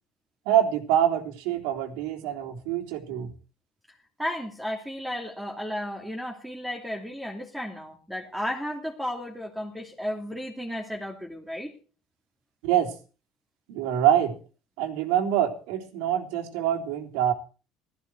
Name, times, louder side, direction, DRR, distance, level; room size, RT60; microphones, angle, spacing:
voice 1, 0.5-3.3 12.6-12.9 13.7-14.3 14.8-17.3, right 10 dB, 85° right, 4 dB, 3.5 m, -25 dB
voice 2, 3.9-11.7, equal, 5° right, 0 dB, 2.8 m, -34 dB
16.5 x 14.5 x 4.6 m, 0.36 s
cardioid pair, 125°, 0 cm